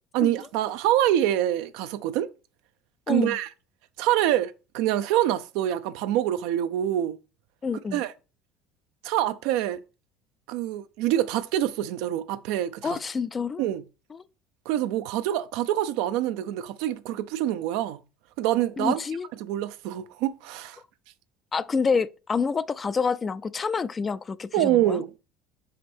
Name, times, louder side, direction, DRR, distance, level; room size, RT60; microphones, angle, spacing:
voice 1, 0.1-2.3 3.1-3.5 4.0-7.2 7.9-8.1 9.0-9.8 10.5-13.0 13.6-13.8 14.7-18.0 18.4-19.0 19.4-20.8 24.5-25.2, right 12 dB, 75° right, 0.5 m, -26 dB
voice 2, 3.1-3.4 7.6-8.0 12.8-13.6 14.1-14.3 18.8-19.3 21.5-25.0, left 5 dB, 25° left, 0.3 m, -28 dB
5.1 x 5.0 x 4.4 m
supercardioid pair, 110°, 0 cm